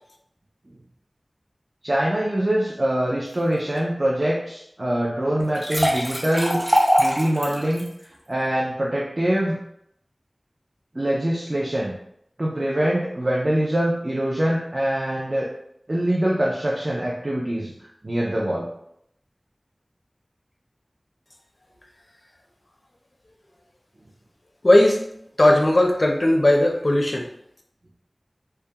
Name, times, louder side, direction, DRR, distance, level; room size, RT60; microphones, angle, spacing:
voice 1, 1.8-6.6 7.0-7.9 8.3-9.6 10.9-11.9 12.4-15.5 15.9-17.7 18.0-18.7, right 1 dB, 50° right, -4 dB, 0.4 m, -24 dB
sound 1, 5.4-7.9, equal, 15° right, 0.8 m, -22 dB
voice 2, 24.6-25.1 25.4-27.3, left 1 dB, 55° left, 2 dB, 0.4 m, -17 dB
2.3 x 2.2 x 2.7 m, 0.73 s
wide cardioid pair, 45°, 0 cm